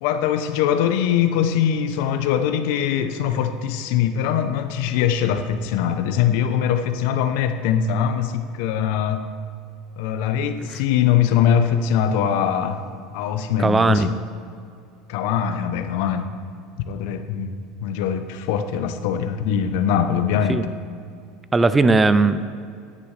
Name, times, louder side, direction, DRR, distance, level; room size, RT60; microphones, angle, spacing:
voice 1, 0.0-9.3 10.0-12.8 13.1-14.1 15.1-16.3 16.8-20.7, left 8 dB, 70° left, 9 dB, 0.7 m, -22 dB
voice 2, 13.6-14.1 20.5-20.6 21.5-22.5, right 3 dB, 15° right, 13 dB, 0.4 m, -17 dB
10.0 x 9.3 x 3.3 m, 2.3 s
supercardioid pair, 140°, 0 cm